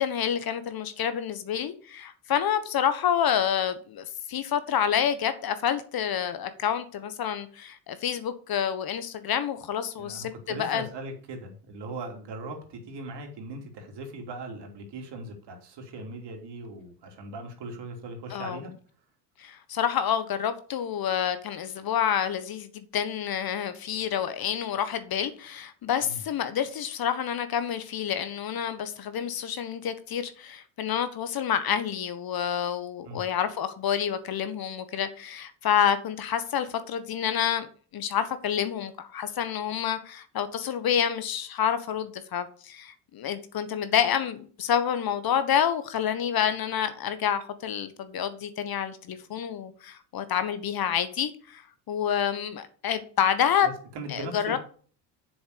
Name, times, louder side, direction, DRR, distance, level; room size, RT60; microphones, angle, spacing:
voice 1, 0.0-10.9 18.3-18.6 19.4-51.6 51.9-53.7 54.1-54.6, left 9 dB, 45° left, 1.4 m, -28 dB
voice 2, 10.0-18.7 26.0-26.2 33.0-33.2 53.6-54.6, right 2 dB, 55° right, 3.5 m, -39 dB
7.3 x 6.9 x 7.0 m
hypercardioid pair, 70°, 50 cm